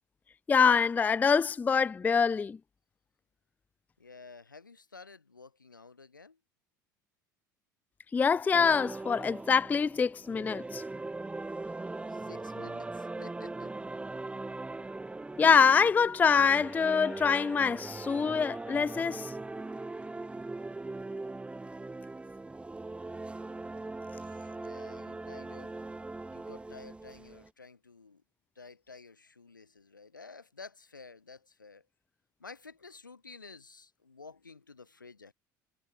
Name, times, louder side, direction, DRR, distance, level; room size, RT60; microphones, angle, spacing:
voice 1, 0.5-2.6 8.1-10.8 15.4-19.3, left 6 dB, 15° left, 0.3 m, -25 dB
voice 2, 4.0-6.4 12.1-13.7 24.2-25.8 26.3-28.2 28.6-31.9 32.4-35.3, left 4 dB, 85° left, 4.2 m, -52 dB
sound 1, 8.5-27.5, right 2 dB, 10° right, 0.8 m, -40 dB
figure-of-eight pair, 65°, 10 cm